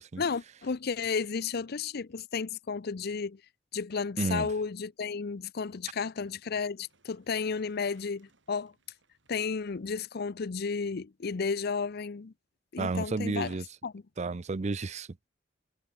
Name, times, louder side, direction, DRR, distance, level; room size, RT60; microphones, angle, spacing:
voice 1, 0.2-3.4 3.7-8.7 9.3-12.3 12.7-13.5 13.8-14.0, left 5 dB, 55° left, 0.6 m, -33 dB
voice 2, 4.2-4.5 12.8-13.6 14.2-15.1, right 3 dB, 35° right, 0.5 m, -31 dB
sound 1, 6.0-11.1, right 4 dB, 75° right, 6.3 m, -70 dB
head